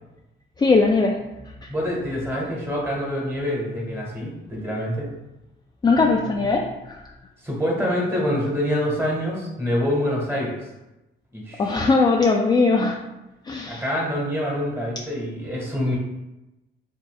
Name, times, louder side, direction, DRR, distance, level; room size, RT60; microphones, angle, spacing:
voice 1, 0.6-1.2 5.8-7.0 11.6-13.0 13.5-13.8, left 3 dB, 20° left, 1 dB, 0.4 m, -19 dB
voice 2, 1.7-5.1 7.4-10.7 11.3-11.7 13.6-16.0, equal, 10° right, -3 dB, 1.5 m, -26 dB
4.2 x 3.7 x 2.3 m, 0.97 s
cardioid pair, 90°, 20 cm